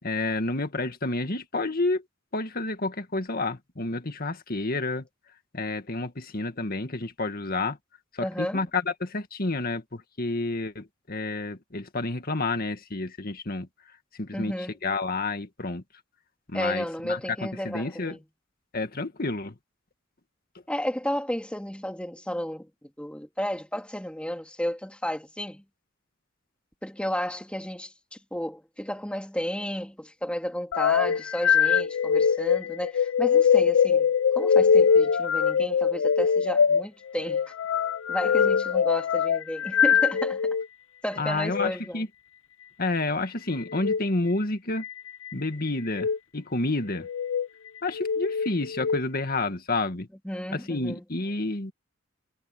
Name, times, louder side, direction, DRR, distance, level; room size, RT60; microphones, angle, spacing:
voice 1, 0.0-2.0 2.3-5.1 5.5-7.8 8.1-13.7 14.2-15.8 16.5-18.2 18.7-19.6 41.2-42.1 42.8-44.8 45.3-47.1 47.8-50.1 50.5-51.7, left 2 dB, 50° left, 2.0 m, -30 dB
voice 2, 8.2-8.6 14.3-14.8 16.5-18.2 20.7-25.6 26.8-37.5 38.1-40.6 41.0-42.0 50.2-51.0, equal, 5° left, 2.6 m, -32 dB
sound 1, 30.7-40.7 41.4-41.7 43.7-44.0 44.8-45.3 45.9-46.2 47.0-47.5 47.9-49.0, left 7 dB, 90° left, 0.4 m, -23 dB
head